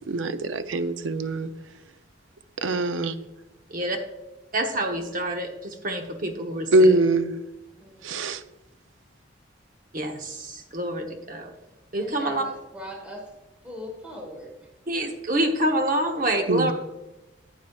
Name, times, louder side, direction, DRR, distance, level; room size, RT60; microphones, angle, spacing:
voice 1, 0.1-1.5 2.6-3.2 6.7-7.3 8.0-8.4 16.5-16.7, right 2 dB, 90° right, 0.5 m, -22 dB
voice 2, 4.5-7.0 9.9-11.5 11.9-12.4 14.9-16.7, right 1 dB, 45° right, 0.9 m, -27 dB
voice 3, 12.0-13.3 13.6-14.7, left 1 dB, 5° right, 1.2 m, -40 dB
9.5 x 9.3 x 2.3 m
head